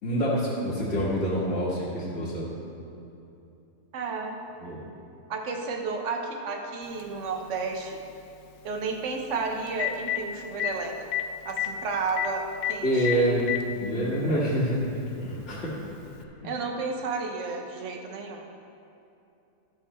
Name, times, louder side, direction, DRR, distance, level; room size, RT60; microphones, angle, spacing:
voice 1, 0.0-2.5 4.6-4.8 12.8-13.4 13.8-14.8 15.2-15.7, equal, 45° left, -11 dB, 2.0 m, -26 dB
voice 2, 3.9-4.4 5.3-8.0 8.6-11.0 11.4-13.3 16.4-18.5, right 4 dB, 55° right, 3 dB, 1.2 m, -32 dB
Telephone, 7.0-7.1 9.2-9.3 9.7-10.2 10.6-10.7 11.1-11.2 11.5-11.7 12.2-12.3 12.6-12.7 13.0-13.6 14.6-14.7 16.2-16.3, left 15 dB, 80° left, 1.1 m, -27 dB
13.0 x 7.3 x 4.3 m, 2.8 s
omnidirectional pair, 1.6 m